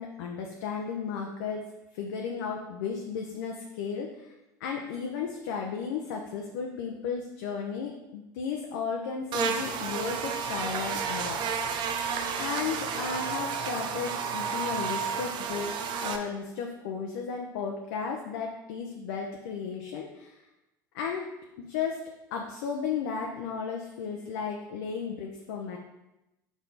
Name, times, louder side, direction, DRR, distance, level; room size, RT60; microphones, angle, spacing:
voice 1, 0.0-1.6 1.9-4.3 4.6-11.7 12.4-20.4 20.9-21.2 21.6-22.0 22.3-25.8, left 6 dB, 65° left, 1 dB, 0.7 m, -34 dB
Buzz, 9.3-16.2, right 6 dB, 45° right, 0.7 m, -31 dB
5.6 x 4.8 x 3.9 m, 0.97 s
figure-of-eight pair, 75°, 11 cm